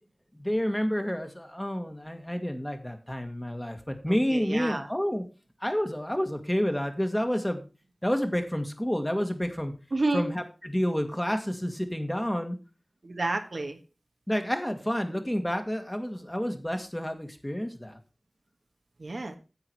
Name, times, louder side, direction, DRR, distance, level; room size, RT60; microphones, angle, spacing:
voice 1, 0.3-5.2 5.6-7.6 8.0-9.7 10.1-12.6 14.3-18.0, equal, 10° left, 5 dB, 1.8 m, -29 dB
voice 2, 4.1-4.9 9.9-10.3 13.0-13.8 19.0-19.4, right 2 dB, 65° right, 6 dB, 1.4 m, -30 dB
9.8 x 8.1 x 4.7 m, 0.32 s
wide cardioid pair, 60°, 0 cm